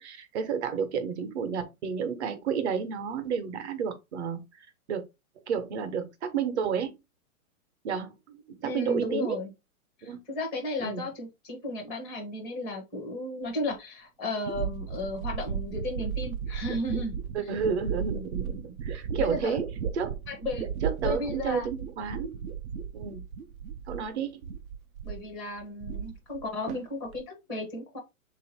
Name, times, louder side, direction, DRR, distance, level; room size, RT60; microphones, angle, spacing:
voice 1, 0.0-5.0 5.5-7.0 7.8-9.4 10.0-10.2 10.8-11.0 17.3-19.6 19.9-20.2 20.8-22.4 22.9-23.2 23.9-24.3, right 6 dB, 50° right, 1.0 m, -31 dB
voice 2, 8.6-9.5 10.0-17.2 19.1-19.6 20.3-20.7 21.0-21.7 25.0-28.0, left 2 dB, ahead, 0.4 m, -34 dB
sound 1, 13.7-13.8 14.5-24.1 24.4-25.3 25.6-26.4 26.7-27.2, right 7 dB, 70° right, 0.8 m, -35 dB
3.6 x 2.8 x 4.2 m
hypercardioid pair, 150°, 44 cm